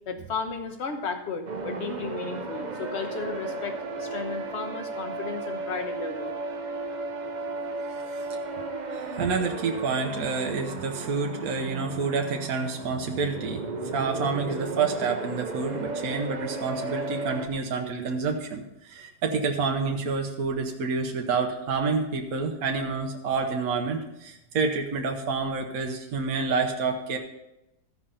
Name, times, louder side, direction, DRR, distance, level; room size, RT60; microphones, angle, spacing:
voice 1, 0.1-6.3, left 5 dB, 45° left, 5 dB, 1.2 m, -34 dB
sound 1, 1.5-17.5, right 3 dB, 45° right, 0.6 m, -34 dB
voice 2, 8.9-13.6 13.9-27.2, right 4 dB, 65° right, 2 dB, 1.4 m, -28 dB
14.5 x 5.0 x 5.6 m, 0.92 s
omnidirectional pair, 1.7 m